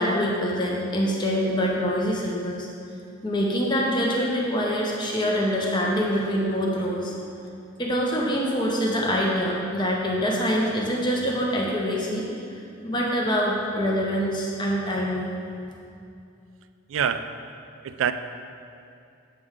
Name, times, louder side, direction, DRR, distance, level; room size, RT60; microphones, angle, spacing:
voice 1, 0.0-2.7 3.2-7.2 7.8-12.3 12.8-15.3, equal, 25° left, -3 dB, 0.7 m, -25 dB
voice 2, 16.9-17.3 17.8-18.1, right 8 dB, 85° right, 10 dB, 0.3 m, -25 dB
8.3 x 3.4 x 5.0 m, 2.5 s
head